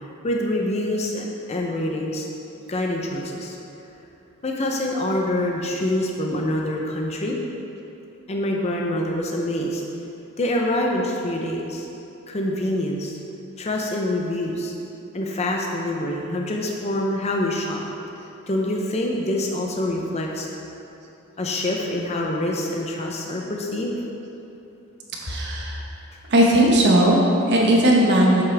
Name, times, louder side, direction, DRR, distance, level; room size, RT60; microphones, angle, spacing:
voice 1, 0.2-2.3 2.7-3.6 4.4-7.4 8.3-9.8 10.4-11.9 12.3-13.2 13.6-14.7 15.1-17.8 18.5-20.5 21.4-24.0, left 1 dB, 30° left, 0 dB, 0.6 m, -25 dB
voice 2, 25.2-25.8 26.3-28.4, right 1 dB, 55° right, -3 dB, 1.2 m, -17 dB
8.0 x 7.3 x 3.4 m, 2.9 s
head